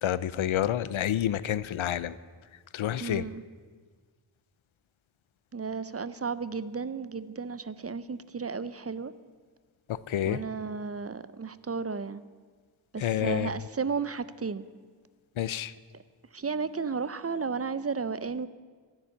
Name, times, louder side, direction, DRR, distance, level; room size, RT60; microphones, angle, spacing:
voice 1, 0.0-2.1 2.7-3.3 10.1-10.4 13.0-13.5 15.4-15.7, left 11 dB, 90° left, 18 dB, 0.6 m, -28 dB
voice 2, 3.0-3.4 5.5-9.1 10.3-12.2 12.9-14.6 16.3-18.5, right 5 dB, 30° right, 15 dB, 0.5 m, -33 dB
13.0 x 7.1 x 9.6 m, 1.5 s
wide cardioid pair, 70°, 46 cm